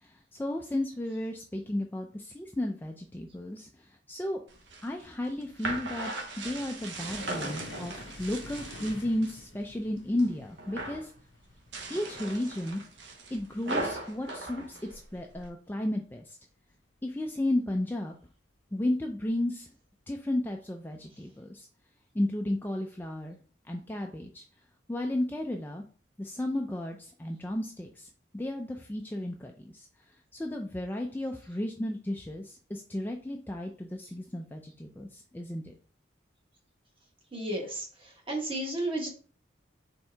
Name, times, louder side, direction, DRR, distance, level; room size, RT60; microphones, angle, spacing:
voice 1, 0.0-4.4 4.8-6.1 6.4-11.1 11.9-12.8 13.3-16.4 17.0-18.1 18.7-19.7 20.1-21.7 22.1-23.4 23.7-24.4 24.9-25.8 26.2-28.1 28.3-29.9 30.3-35.7, left 1 dB, 10° left, 2 dB, 0.3 m, -33 dB
sound 1, 4.5-9.4 9.8-10.3 10.6-11.1 11.6-15.5, right 2 dB, 65° right, 0.9 m, -38 dB
sound 2, 6.9-14.1 14.4-14.8 15.2-15.3 16.2-16.7 17.7-17.9 19.3-19.4, left 3 dB, 75° left, 0.6 m, -49 dB
voice 2, 37.3-39.1, right 1 dB, 25° right, 0 dB, 1.2 m, -33 dB
4.4 x 3.6 x 3.3 m, 0.41 s
head